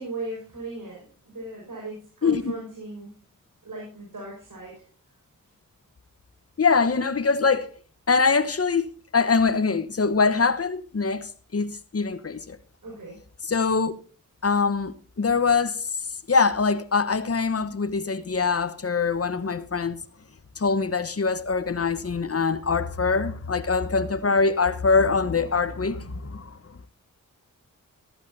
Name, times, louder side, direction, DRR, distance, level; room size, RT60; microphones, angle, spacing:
voice 1, 0.0-3.2 3.6-4.8 12.8-13.2, right 2 dB, 65° right, 5.9 m, -37 dB
voice 2, 2.2-2.5 6.6-7.7 8.1-12.6 13.4-13.9 14.4-15.9 16.3-20.0 20.6-26.8, left 4 dB, 45° left, 1.2 m, -23 dB
14.0 x 14.0 x 2.8 m
cardioid pair, 55°, 34 cm